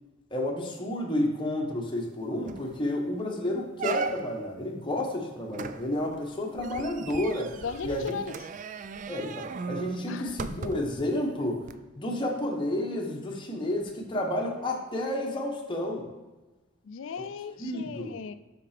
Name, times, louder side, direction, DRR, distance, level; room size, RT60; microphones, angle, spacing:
voice 1, 0.3-7.5 7.8-8.1 9.1-11.6 12.0-16.1 17.6-18.1, left 1 dB, 25° left, 0 dB, 1.1 m, -31 dB
sound 1, 2.0-2.1 2.5-2.8 3.2-3.3 3.8-4.5 5.5-11.0 11.6-11.7, right 4 dB, 40° right, 0.3 m, -37 dB
voice 2, 7.6-8.3 10.1-10.4 16.8-18.3, left 6 dB, 65° left, 12 dB, 0.4 m, -36 dB
6.0 x 5.8 x 5.0 m, 1.2 s
head